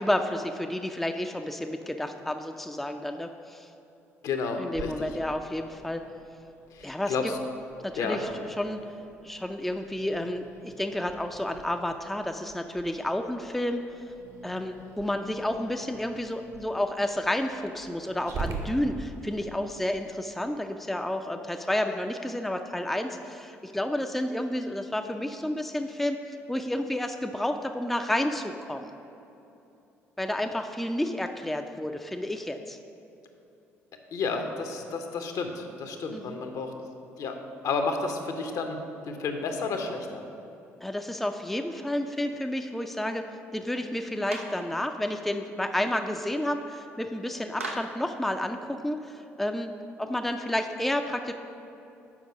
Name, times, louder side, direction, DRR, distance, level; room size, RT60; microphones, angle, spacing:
voice 1, 0.0-3.7 4.6-6.0 6.8-7.3 7.8-8.9 9.2-13.8 14.4-28.9 30.2-32.8 36.1-36.4 40.8-43.2 43.5-51.3, left 1 dB, 5° left, 5 dB, 0.4 m, -31 dB
voice 2, 4.2-5.1 6.7-7.4 8.0-8.2 34.1-36.7 37.2-37.4 37.6-38.8 39.0-40.2, left 4 dB, 55° left, 5 dB, 0.8 m, -31 dB
Growling, 4.7-19.5, right 4 dB, 50° right, 0.9 m, -44 dB
Clapping, 44.3-44.6 47.6-48.0, right 2 dB, 90° right, 0.5 m, -36 dB
7.3 x 5.3 x 4.9 m, 2.9 s
figure-of-eight pair, 50°, 7 cm